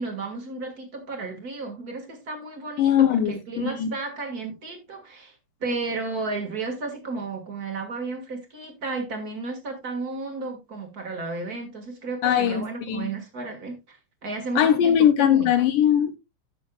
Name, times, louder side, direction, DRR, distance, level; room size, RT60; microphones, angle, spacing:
voice 1, 0.0-15.5, right 3 dB, 40° right, 1.4 m, -33 dB
voice 2, 2.8-3.9 12.2-13.1 14.6-16.2, left 10 dB, 75° left, 2.3 m, -20 dB
16.0 x 6.3 x 2.3 m
omnidirectional pair, 4.3 m